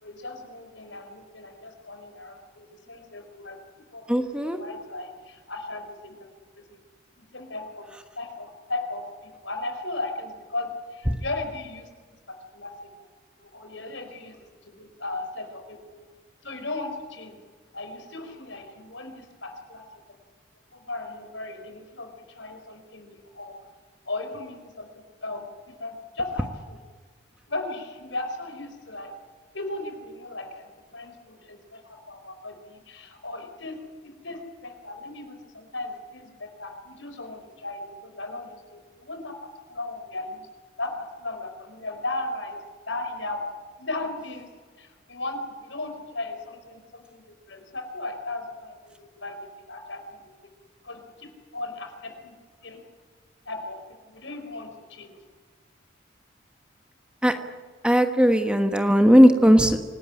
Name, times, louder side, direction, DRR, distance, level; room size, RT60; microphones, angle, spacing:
voice 1, 0.0-6.3 7.3-7.9 8.2-9.1 9.4-11.9 12.3-12.7 13.4-14.4 14.7-16.1 16.4-17.4 17.7-19.8 20.7-23.5 24.1-24.9 25.2-26.8 27.5-29.1 29.5-33.8 34.2-40.5 40.8-42.6 42.9-43.4 43.8-44.5 44.8-47.2 47.5-50.3 50.8-52.3 52.6-52.8 53.4-55.1, left 2 dB, 75° left, 6 dB, 4.7 m, -36 dB
voice 2, 4.1-4.6 57.2-57.3 57.8-59.8, equal, 5° right, 6 dB, 1.3 m, -17 dB
26.0 x 18.5 x 9.9 m, 1.5 s
head